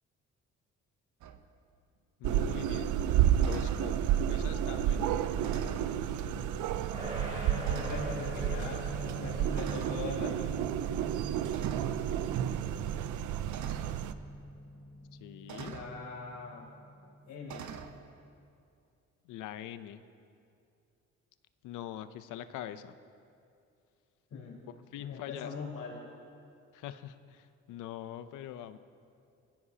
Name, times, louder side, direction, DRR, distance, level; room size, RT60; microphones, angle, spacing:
sound 1, 1.2-1.4 3.4-3.9 5.4-6.0 6.8-6.9 7.6-8.2 9.6-10.1 11.5-12.0 13.5-14.0 15.5-15.9 17.5-17.9, right 7 dB, 70° right, 1.0 m, -43 dB
voice 1, 2.2-2.9 3.3-4.0 4.3-5.1 15.2-15.8 19.2-20.0 21.6-22.9 24.9-25.5 26.7-28.8, left 11 dB, 90° left, 12 dB, 0.7 m, -43 dB
sound 2, 2.2-14.1, right 10 dB, 85° right, 0.6 m, -31 dB
sound 3, 6.9-17.8, equal, 25° right, 2.7 m, -44 dB
voice 2, 7.5-8.8 9.1-10.4 15.6-16.7 17.3-17.7 24.3-24.6 25.0-26.0, left 4 dB, 70° left, -3 dB, 4.3 m, -41 dB
20.5 x 16.0 x 2.9 m, 2.5 s
cardioid pair, 90°, 30 cm